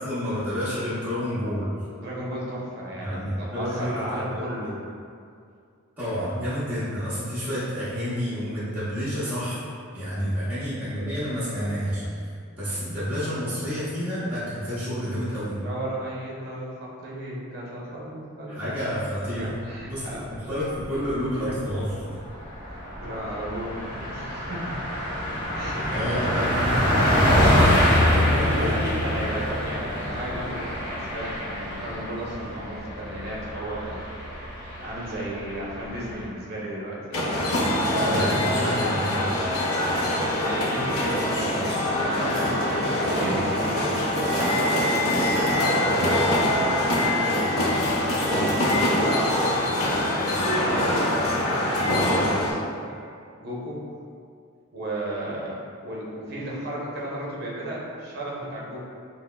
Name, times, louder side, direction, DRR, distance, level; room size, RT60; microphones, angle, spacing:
voice 1, 0.0-1.7 3.0-4.4 6.0-9.6 9.9-15.6 18.5-20.0 20.3-22.2 25.9-28.7 37.9-39.4, equal, 10° right, -14 dB, 0.8 m, -29 dB
voice 2, 1.9-4.7 10.3-10.5 15.6-18.7 19.4-20.2 21.5-21.6 22.7-25.0 25.5-26.3 28.1-34.0 34.8-37.3 40.0-52.9 53.3-53.8 54.7-58.8, right 1 dB, 45° right, -5 dB, 0.7 m, -34 dB
Car passing by, 20.6-21.2 21.6-21.7 22.0-36.2, equal, 25° left, 1.2 m, -25 dB
sound 1, 37.1-52.5, left 1 dB, 85° left, 0.6 m, -24 dB
5.8 x 2.1 x 2.3 m, 2.3 s
head